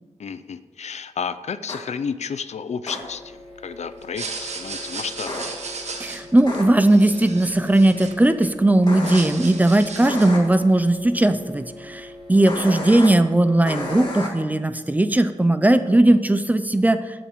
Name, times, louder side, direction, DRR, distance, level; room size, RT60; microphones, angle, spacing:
voice 1, 0.2-5.5, left 6 dB, 65° left, 13 dB, 0.5 m, -32 dB
sound 1, 1.7-1.8 2.9-3.0 5.3-5.4 6.5-6.6 8.9-9.2 10.1-10.4 12.5-13.1 13.7-14.3, left 1 dB, 35° left, 2.3 m, -30 dB
sound 2, 3.0-14.2, left 1 dB, 5° left, 3.3 m, -43 dB
sound 3, 4.0-8.5 8.8-10.5, right 4 dB, 65° right, 1.3 m, -35 dB
voice 2, 6.0-17.0, right 1 dB, 15° right, 10 dB, 0.5 m, -18 dB
12.5 x 5.8 x 7.2 m, 1.3 s
wide cardioid pair, 175°, 12 cm